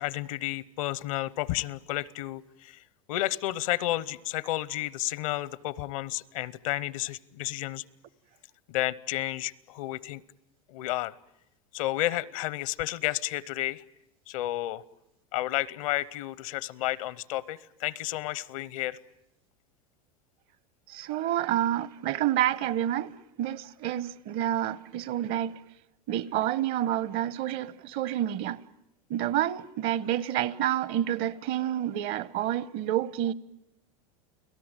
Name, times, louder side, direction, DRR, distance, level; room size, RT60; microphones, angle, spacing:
voice 1, 0.0-2.8 3.1-7.8 8.7-10.2 10.7-11.1 11.7-13.8 14.3-14.8 15.3-19.0, left 16 dB, 70° left, 0.9 m, -31 dB
voice 2, 20.9-25.6 26.1-28.6 29.1-33.3, right 12 dB, 55° right, 1.0 m, -29 dB
30.0 x 18.5 x 9.0 m
hypercardioid pair, 105°, 18 cm